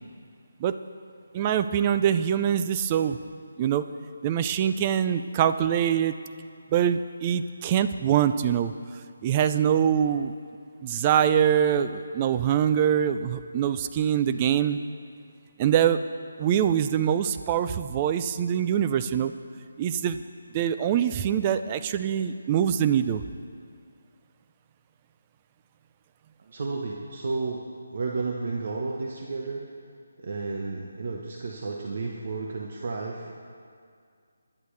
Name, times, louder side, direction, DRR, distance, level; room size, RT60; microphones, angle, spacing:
voice 1, 1.3-3.2 3.6-3.8 4.2-6.2 6.7-8.7 9.2-10.3 10.8-14.8 15.6-16.0 16.4-19.3 19.8-20.2 20.5-23.2, right 9 dB, 20° right, 11 dB, 0.4 m, -24 dB
voice 2, 26.4-27.6 27.9-29.7 30.2-33.3, right 3 dB, 45° right, -1 dB, 1.1 m, -32 dB
20.5 x 11.0 x 3.3 m, 2.2 s
figure-of-eight pair, 165°, 0 cm